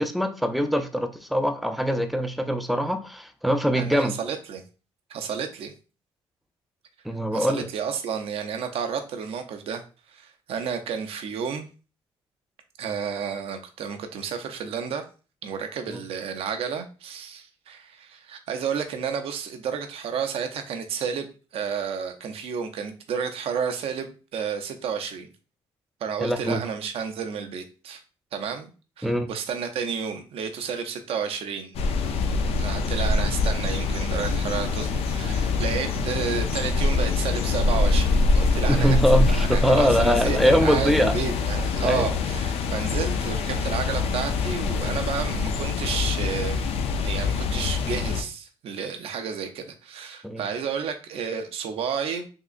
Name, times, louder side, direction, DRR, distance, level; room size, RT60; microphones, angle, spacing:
voice 1, 0.0-4.1 7.1-7.7 15.9-16.0 26.2-26.6 29.0-29.3 38.7-41.2 41.8-42.1 50.2-50.4, equal, ahead, 6 dB, 0.4 m, -23 dB
voice 2, 3.7-4.6 5.1-5.7 7.3-9.8 10.1-11.7 12.8-15.0 15.4-25.3 26.0-28.0 28.3-28.7 29.0-31.8 32.5-46.7 47.0-52.3, right 7 dB, 65° right, 6 dB, 0.6 m, -31 dB
sound 1, 31.7-48.2, left 4 dB, 70° left, 0.5 m, -24 dB
3.7 x 2.9 x 2.5 m, 0.34 s
cardioid pair, 125°, 11 cm